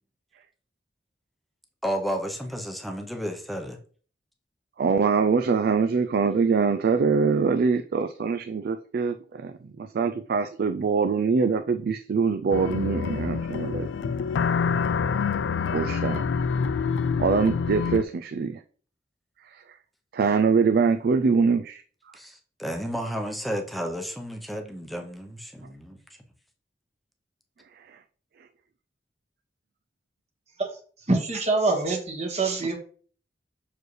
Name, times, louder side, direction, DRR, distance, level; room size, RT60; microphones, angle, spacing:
voice 1, 1.8-3.8 22.1-26.0, equal, ahead, 0.8 m, -32 dB
voice 2, 4.8-13.9 15.7-16.2 17.2-18.6 19.4-19.8 20.1-21.8 27.9-28.0, right 5 dB, 55° right, 0.4 m, -24 dB
sound 1, 12.5-18.0, left 6 dB, 70° left, 0.3 m, -26 dB
voice 3, 31.1-32.8, right 3 dB, 40° right, 1.5 m, -25 dB
6.3 x 4.6 x 3.2 m
head